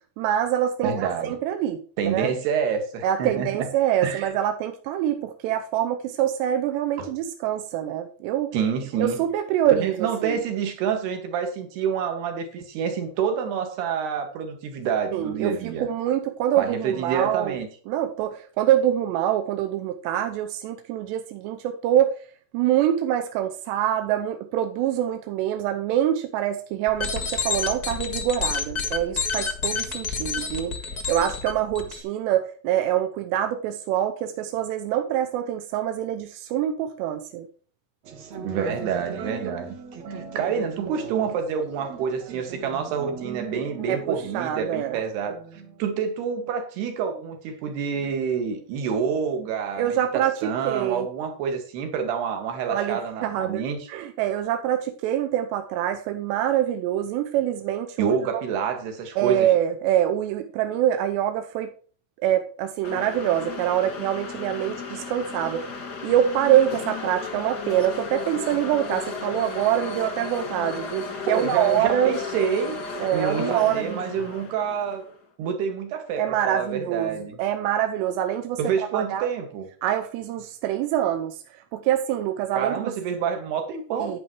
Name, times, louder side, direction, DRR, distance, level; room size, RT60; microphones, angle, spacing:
voice 1, 0.2-2.3 3.0-8.6 9.0-10.4 15.1-17.6 17.9-22.2 22.5-30.8 31.1-37.5 43.9-45.0 49.8-51.1 52.7-58.4 59.2-61.7 62.2-72.2 73.0-74.2 76.2-78.6 78.9-79.3 79.8-82.9 84.0-84.2, right 11 dB, 90° right, 3.0 m, -25 dB
voice 2, 0.8-1.4 2.0-3.7 4.0-4.3 7.0-7.1 8.5-9.2 9.8-15.9 16.6-17.7 38.4-39.8 40.1-45.4 45.8-49.9 50.1-53.8 58.0-59.5 71.3-72.8 73.1-75.0 75.4-77.4 78.6-79.7 82.6-84.2, right 7 dB, 70° right, 3.9 m, -27 dB
sound 1, 26.9-32.0, left 5 dB, 85° left, 0.8 m, -29 dB
sound 2, 38.0-46.0, right 5 dB, 55° right, 2.0 m, -39 dB
sound 3, 62.8-75.1, left 4 dB, 45° left, 1.3 m, -34 dB
11.0 x 10.0 x 3.1 m
omnidirectional pair, 4.9 m